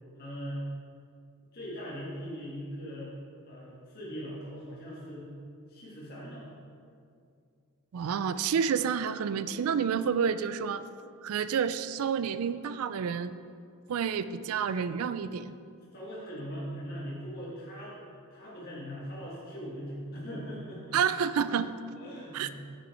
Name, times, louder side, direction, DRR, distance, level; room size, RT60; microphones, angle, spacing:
voice 1, 0.2-0.7 1.5-3.1 3.5-5.3 5.7-6.5 15.9-18.0 18.3-21.0 22.0-22.5, equal, 45° left, -7 dB, 1.7 m, -40 dB
voice 2, 7.9-10.8 11.2-13.3 13.9-15.5 20.9-21.7 22.3-22.5, right 7 dB, 70° right, 13 dB, 0.3 m, -29 dB
7.1 x 7.1 x 4.3 m, 2.3 s
head